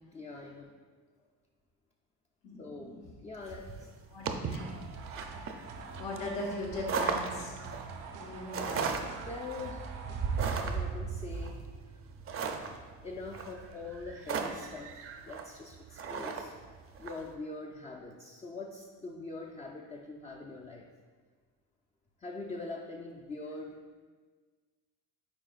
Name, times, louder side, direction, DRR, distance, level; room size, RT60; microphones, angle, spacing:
voice 1, 0.1-0.8 2.6-3.9 9.3-9.9 10.6-11.6 11.9-12.0 13.0-16.5 17.0-20.9 22.2-24.0, left 3 dB, 20° left, 0 dB, 0.4 m, -43 dB
voice 2, 2.4-2.9 4.1-4.6 5.0-5.1 5.8-7.6 8.2-9.0, left 2 dB, 85° left, -3 dB, 1.6 m, -39 dB
sound 1, 3.5-17.2, right 5 dB, 40° right, 0.5 m, -37 dB
sound 2, 4.5-11.0, right 4 dB, 80° right, 0.8 m, -46 dB
8.8 x 4.4 x 2.4 m, 1.5 s
cardioid pair, 110°, 36 cm